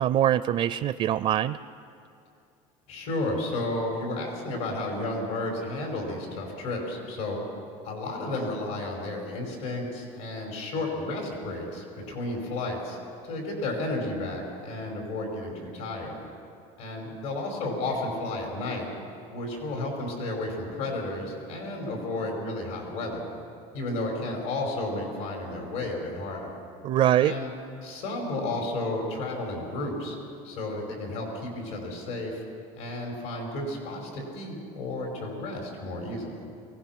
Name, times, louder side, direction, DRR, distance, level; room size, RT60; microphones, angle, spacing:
voice 1, 0.0-1.6 26.8-27.3, right 11 dB, 40° right, 14 dB, 0.4 m, -23 dB
voice 2, 2.9-7.4 7.8-13.0 13.2-16.2 16.8-18.9 19.3-23.2 23.7-26.5 27.2-27.5 27.8-30.2 30.4-32.4 32.8-36.4, left 2 dB, 85° left, 0 dB, 5.6 m, -32 dB
23.0 x 18.5 x 6.1 m, 2.5 s
cardioid pair, 130°, 16 cm